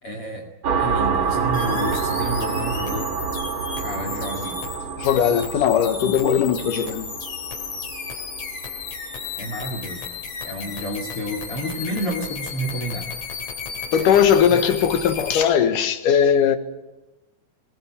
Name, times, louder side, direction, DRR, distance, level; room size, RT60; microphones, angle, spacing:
voice 1, 0.0-0.5 0.8-3.1 3.8-4.6 9.4-10.1 10.4-13.1 14.5-14.6, equal, 45° left, 3.1 m, -30 dB
sound 1, 0.6-9.9, right 5 dB, 50° right, 1.8 m, -28 dB
sound 2, 1.5-15.4, left 5 dB, 60° left, 4.0 m, -34 dB
voice 2, 5.0-7.1 13.9-16.6, left 8 dB, 80° left, 2.9 m, -19 dB
21.0 x 19.5 x 8.7 m
omnidirectional pair, 3.7 m